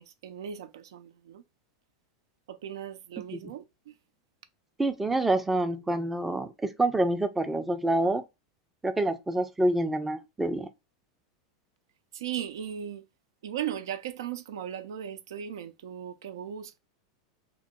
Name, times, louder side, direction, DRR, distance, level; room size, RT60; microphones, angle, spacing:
voice 1, 0.0-1.4 2.5-3.9 12.1-13.0 13.4-16.8, right 9 dB, 85° right, 0.4 m, -37 dB
voice 2, 4.8-8.2 8.8-10.7, right 1 dB, 10° right, 0.4 m, -27 dB
2.9 x 2.0 x 3.5 m
supercardioid pair, 140°, 2 cm